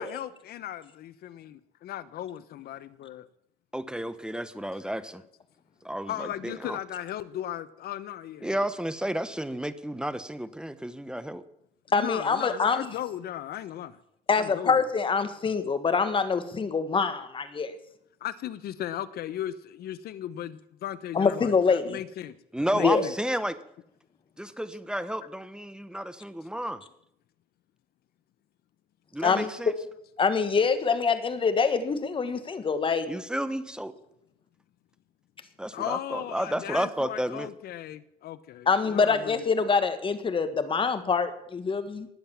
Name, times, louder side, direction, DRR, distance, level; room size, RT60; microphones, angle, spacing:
voice 1, 0.0-1.5 1.8-3.3 4.3-4.7 6.1-8.6 11.9-14.0 14.3-14.8 18.2-22.4 22.7-23.1 35.7-39.4, left 12 dB, 65° left, 1.1 m, -37 dB
voice 2, 3.7-5.2 5.8-6.8 8.4-11.4 22.5-23.6 24.4-26.8 29.1-29.7 33.1-33.9 35.6-37.5, right 1 dB, 5° right, 1.0 m, -31 dB
voice 3, 11.9-12.8 14.3-17.7 21.1-22.0 22.8-23.0 29.2-29.5 30.2-33.1 38.7-42.1, left 5 dB, 30° left, 1.7 m, -25 dB
20.0 x 7.8 x 7.3 m
cardioid pair, 110°, 17 cm